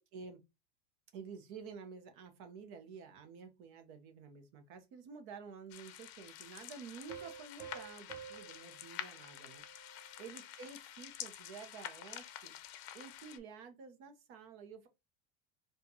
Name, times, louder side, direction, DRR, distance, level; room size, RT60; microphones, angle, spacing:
voice 1, 1.1-12.5 12.9-14.9, right 5 dB, 45° right, 0.9 m, -51 dB
sound 1, 5.7-13.4, left 12 dB, 50° left, 0.6 m, -48 dB
sound 2, 7.1-10.4, right 8 dB, 15° right, 0.3 m, -52 dB
4.3 x 2.4 x 2.7 m
supercardioid pair, 165°, 31 cm